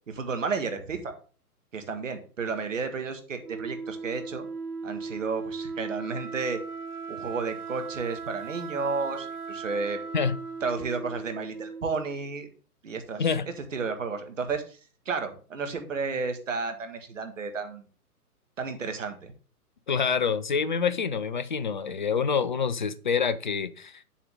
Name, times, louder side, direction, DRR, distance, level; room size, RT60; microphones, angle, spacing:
voice 1, 0.1-1.1 1.7-4.5 4.8-6.6 7.1-10.0 10.6-12.5 12.8-13.3 13.7-14.8 15.0-17.8 18.6-19.3, right 4 dB, 55° right, 1.8 m, -32 dB
Wind instrument woodwind instrument, 3.4-12.2, right 5 dB, 70° right, 1.3 m, -38 dB
voice 2, 19.9-24.0, left 6 dB, 30° left, 0.5 m, -27 dB
8.5 x 7.2 x 3.6 m
figure-of-eight pair, 130°, 46 cm